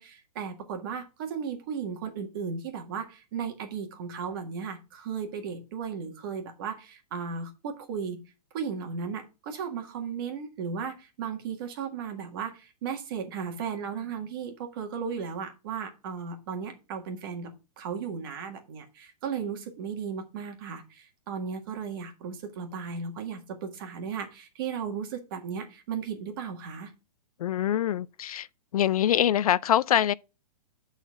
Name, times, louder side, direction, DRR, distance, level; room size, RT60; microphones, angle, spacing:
voice 1, 0.0-8.2 8.5-17.5 17.8-26.9, right 6 dB, 35° right, 1.6 m, -35 dB
voice 2, 27.4-28.5 28.7-30.1, left 11 dB, 65° left, 0.4 m, -24 dB
9.0 x 4.1 x 6.1 m
hypercardioid pair, 175°, 20 cm